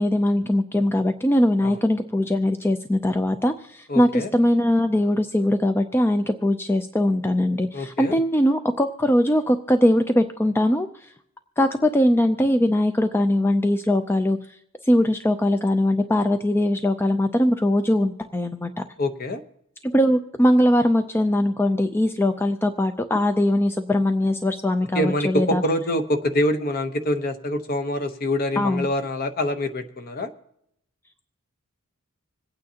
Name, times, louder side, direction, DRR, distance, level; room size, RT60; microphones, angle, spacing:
voice 1, 0.0-11.1 11.6-14.4 14.9-18.8 19.8-25.6 28.6-28.9, left 1 dB, 10° left, 8 dB, 0.4 m, -21 dB
voice 2, 3.9-4.3 7.7-8.2 19.0-19.4 24.9-30.3, left 1 dB, 40° left, 8 dB, 0.9 m, -25 dB
26.0 x 8.9 x 2.8 m, 0.76 s
head